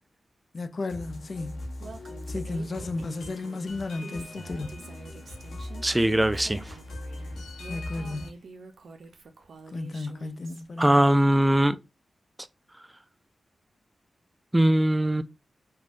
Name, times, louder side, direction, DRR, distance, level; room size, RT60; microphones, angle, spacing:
voice 1, 0.5-1.7 2.3-4.8 7.7-8.3 9.7-11.1, left 3 dB, 55° left, 0.3 m, -34 dB
sound 1, 0.9-8.3, left 1 dB, 85° left, 0.8 m, -40 dB
Female speech woman speaking, 1.8-10.6, right 4 dB, 75° right, 0.5 m, -47 dB
voice 2, 5.8-6.7 10.8-11.8 14.5-15.2, right 1 dB, 15° right, 0.4 m, -21 dB
3.2 x 2.2 x 2.5 m
cardioid pair, 40°, 0 cm